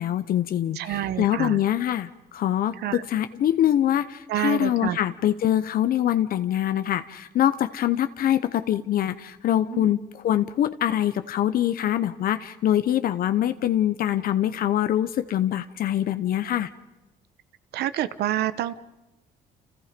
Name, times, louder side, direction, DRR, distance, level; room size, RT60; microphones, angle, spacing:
voice 1, 0.0-16.7, left 11 dB, 60° left, 11 dB, 0.9 m, -24 dB
voice 2, 0.7-1.6 2.8-3.0 4.3-5.0 9.7-9.9 17.7-18.7, right 12 dB, 75° right, 14 dB, 1.1 m, -28 dB
30.0 x 27.5 x 5.2 m, 1.0 s
cardioid pair, 110°, 17 cm